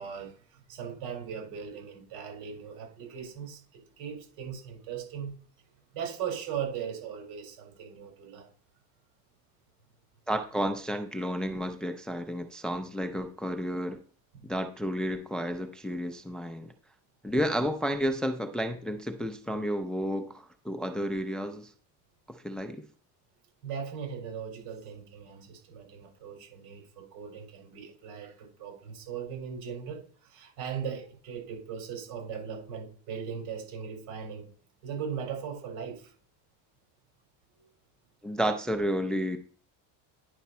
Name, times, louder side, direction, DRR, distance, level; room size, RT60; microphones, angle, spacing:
voice 1, 0.0-5.4 5.9-8.5 14.3-14.5 23.6-34.5 34.8-36.1 37.6-37.7, right 7 dB, 85° right, 4.5 m, -39 dB
voice 2, 10.3-14.0 14.4-16.7 17.2-21.7 22.3-22.9 38.2-39.4, equal, ahead, 0.4 m, -31 dB
10.0 x 5.8 x 4.2 m
cardioid pair, 180°, 35 cm